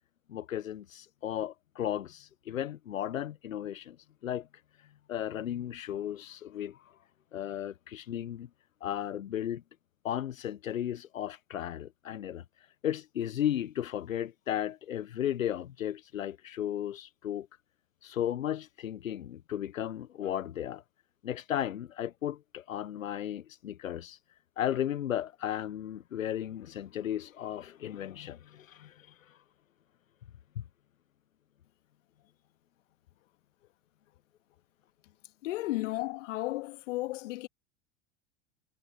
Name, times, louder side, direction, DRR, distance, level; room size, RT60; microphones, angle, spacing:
voice 1, 0.3-4.0 4.2-4.5 4.8-6.9 7.3-8.5 8.8-9.6 10.0-17.5 18.0-20.8 21.2-29.4 30.6-30.7, left 11 dB, 90° left, 0.9 m, -35 dB
voice 2, 35.4-37.5, left 18 dB, 70° left, 2.0 m, -34 dB
hypercardioid pair, 95°, 39 cm